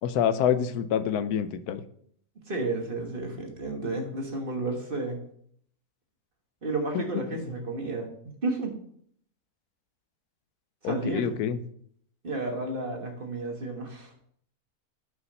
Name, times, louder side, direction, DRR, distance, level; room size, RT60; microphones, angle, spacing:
voice 1, 0.0-1.8 6.9-7.4 10.8-11.6, left 8 dB, 90° left, 12 dB, 1.1 m, -27 dB
voice 2, 2.5-5.2 6.6-8.1 8.4-8.7 10.8-11.3 12.2-14.1, right 2 dB, 40° right, 2 dB, 1.4 m, -32 dB
5.9 x 5.7 x 5.4 m, 0.65 s
omnidirectional pair, 1.6 m